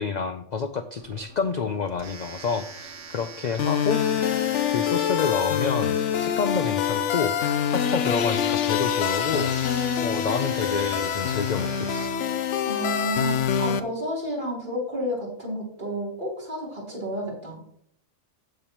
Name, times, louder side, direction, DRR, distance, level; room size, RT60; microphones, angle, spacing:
voice 1, 0.0-4.0 4.7-12.1, left 5 dB, 55° left, 10 dB, 0.5 m, -29 dB
Domestic sounds home sounds, 1.0-13.4, right 4 dB, 75° right, 1.5 m, -44 dB
sound 1, 3.6-13.8, left 8 dB, 70° left, 1.0 m, -25 dB
voice 2, 12.6-17.6, equal, 40° right, -4 dB, 3.7 m, -31 dB
15.5 x 6.9 x 3.0 m, 0.68 s
omnidirectional pair, 1.3 m